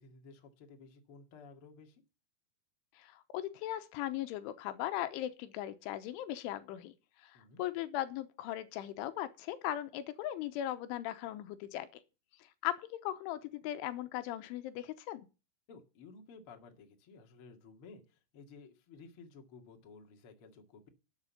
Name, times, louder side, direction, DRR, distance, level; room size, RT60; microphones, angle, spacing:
voice 1, 0.0-2.0 7.3-7.6 15.7-20.9, left 4 dB, 45° left, 1.8 m, -55 dB
voice 2, 3.0-6.9 7.2-11.9 12.4-15.3, left 13 dB, 80° left, 3.3 m, -38 dB
12.0 x 8.2 x 7.0 m
omnidirectional pair, 5.6 m